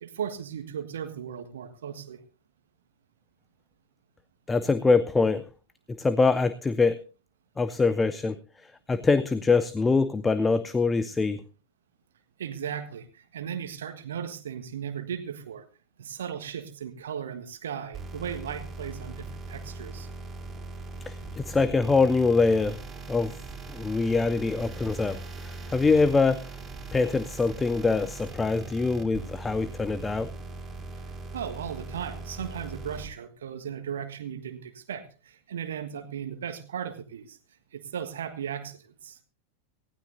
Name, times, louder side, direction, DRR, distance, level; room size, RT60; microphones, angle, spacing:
voice 1, 0.0-2.2 12.4-15.6 16.0-20.1 31.3-37.4 37.7-39.2, right 8 dB, 65° right, 9 dB, 1.5 m, -36 dB
voice 2, 4.5-5.5 6.0-7.0 7.6-8.4 8.9-11.4 21.1-22.8 23.1-23.3 23.7-26.4 26.9-30.3, left 4 dB, 15° left, 15 dB, 0.7 m, -24 dB
sound 1, 17.9-33.0, right 3 dB, 20° right, 4.5 m, -40 dB
19.0 x 15.5 x 2.6 m, 0.34 s
figure-of-eight pair, 90°, 0 cm